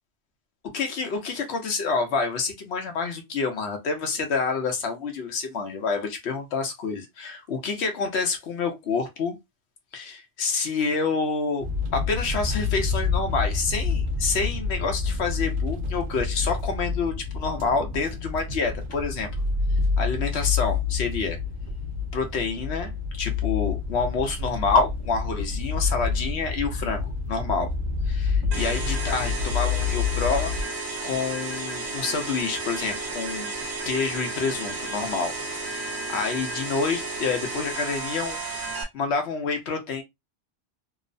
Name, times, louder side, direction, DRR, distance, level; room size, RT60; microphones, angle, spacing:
voice 1, 0.7-9.4 9.9-19.3 20.0-21.4 22.1-27.7 28.1-30.5 31.0-33.5 33.9-35.3 35.6-38.4 38.9-40.0, left 4 dB, 80° left, 0.9 m, -28 dB
sound 1, 11.6-30.6, left 4 dB, 60° right, 0.8 m, -28 dB
sound 2, 28.5-38.8, right 3 dB, 80° right, 1.0 m, -33 dB
2.9 x 2.0 x 2.4 m
omnidirectional pair, 1.1 m